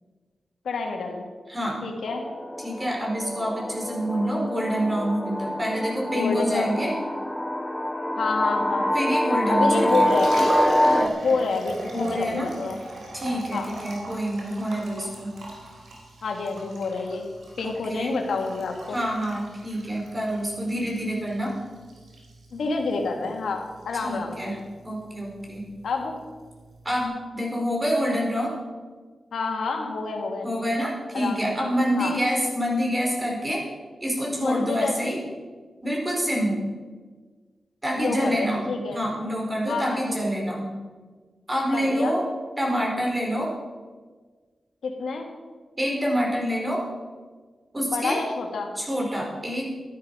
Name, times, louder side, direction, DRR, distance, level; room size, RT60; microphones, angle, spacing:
voice 1, 0.6-1.3 1.8-2.2 6.2-6.9 8.2-8.9 9.5-10.4 11.2-12.8 13.5-13.7 16.2-17.3 17.6-19.0 22.5-24.6 25.8-26.1 29.3-30.5 31.1-31.4 32.0-32.2 34.4-35.2 37.9-39.0 39.7-40.2 41.7-42.1 44.8-45.3 47.9-48.7, left 3 dB, 90° left, 2 dB, 1.8 m, -28 dB
voice 2, 1.5-1.8 2.6-6.9 8.9-10.1 11.9-12.5 13.1-15.3 17.6-18.2 18.9-21.5 24.0-24.6 24.8-25.6 26.8-28.5 30.4-33.6 34.0-35.2 35.8-36.6 37.8-38.6 38.9-40.7 41.5-42.3 42.6-43.5 45.8-46.8 47.7-48.2 48.8-49.7, equal, 25° right, -1 dB, 4.4 m, -27 dB
sound 1, 2.1-11.1, left 1 dB, 15° left, 0.8 m, -26 dB
Liquid, 9.7-27.0, right 1 dB, 85° right, 3.5 m, -36 dB
12.0 x 11.5 x 5.3 m, 1.4 s
cardioid pair, 65°, 0 cm